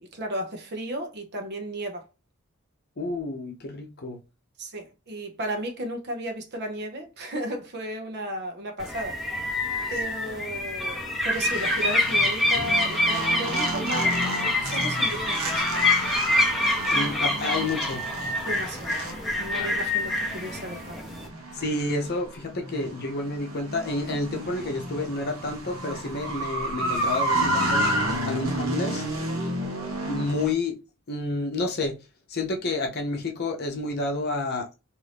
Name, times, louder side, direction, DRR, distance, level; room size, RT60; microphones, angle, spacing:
voice 1, 0.0-2.1 4.6-9.2 9.9-14.2 14.6-15.7 18.4-19.0 19.4-21.0 29.5-29.7, right 1 dB, 50° right, 0.8 m, -34 dB
voice 2, 3.0-4.2 16.9-18.0 21.5-27.9 28.3-29.0 30.1-30.8 31.1-32.0 32.3-34.7, left 2 dB, 50° left, 0.7 m, -29 dB
sound 1, 8.8-21.3, left 2 dB, ahead, 0.8 m, -26 dB
sound 2, 11.3-30.5, right 1 dB, 80° right, 0.9 m, -31 dB
2.7 x 2.6 x 3.3 m
head